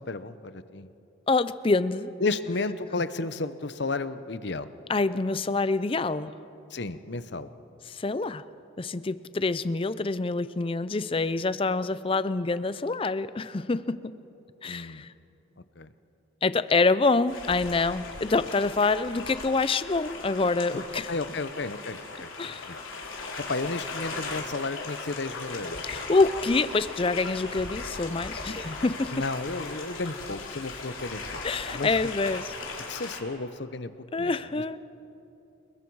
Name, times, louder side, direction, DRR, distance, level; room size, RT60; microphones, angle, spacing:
voice 1, 0.1-0.9 2.2-4.7 6.7-7.5 14.7-15.0 15.8-15.9 20.7-20.8 21.1-22.3 22.7-22.8 23.5-25.9 29.1-31.4 31.7-32.0 32.9-33.9 34.2-34.3, left 3 dB, 55° left, 13 dB, 0.8 m, -33 dB
voice 2, 1.3-2.1 4.9-6.4 7.9-8.4 8.8-14.1 14.6-15.1 16.4-21.1 22.4-22.7 25.8-29.2 31.4-32.5 34.1-34.8, left 3 dB, 25° left, 15 dB, 0.5 m, -26 dB
sound 1, 17.3-33.2, left 3 dB, 85° left, 3.3 m, -38 dB
29.0 x 20.5 x 4.7 m, 2.8 s
head